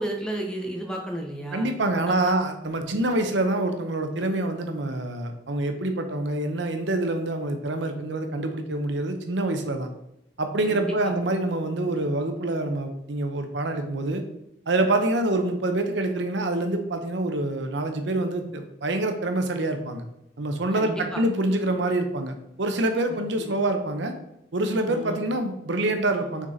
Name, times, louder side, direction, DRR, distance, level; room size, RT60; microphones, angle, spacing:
voice 1, 0.0-1.7 2.1-2.2 10.7-11.2 20.7-21.2 23.1-23.5 24.9-25.3, right 1 dB, 5° left, 1 dB, 0.9 m, -33 dB
voice 2, 1.5-9.9 10.4-14.2 14.7-20.0 20.4-24.1 24.5-26.5, right 2 dB, 75° right, 6 dB, 0.8 m, -26 dB
6.1 x 4.0 x 4.0 m, 0.84 s
head